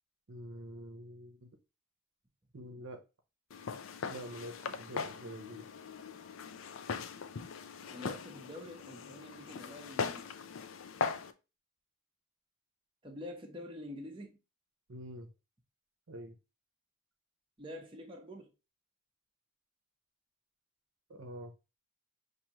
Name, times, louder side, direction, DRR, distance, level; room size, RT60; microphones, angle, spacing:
voice 1, 0.3-1.5 2.5-3.0 4.1-5.7 14.9-15.3 16.1-16.4 21.1-21.5, right 1 dB, 60° right, 0.7 m, -46 dB
Walk footsteps, 3.5-11.3, left 5 dB, 60° left, 0.5 m, -40 dB
voice 2, 7.9-10.3 13.0-14.4 17.6-18.5, left 1 dB, 25° right, 0.7 m, -46 dB
6.0 x 2.7 x 2.9 m
head